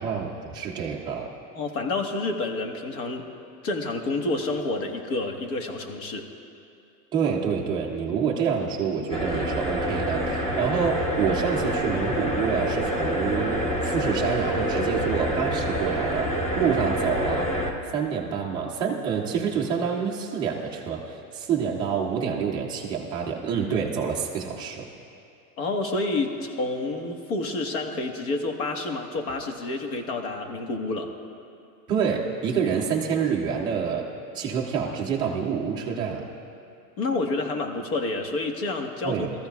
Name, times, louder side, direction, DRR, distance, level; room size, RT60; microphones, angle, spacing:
voice 1, 0.0-1.3 7.1-17.6 17.9-24.9 31.9-36.3 39.0-39.3, right 6 dB, 10° right, -2 dB, 0.3 m, -27 dB
voice 2, 1.5-3.3 3.6-6.3 25.6-31.1 37.0-39.1, left 2 dB, 55° left, 4 dB, 1.5 m, -29 dB
sound 1, 9.1-17.7, equal, 15° left, 0.9 m, -27 dB
19.5 x 14.0 x 2.3 m, 2.5 s
supercardioid pair, 140°, 50 cm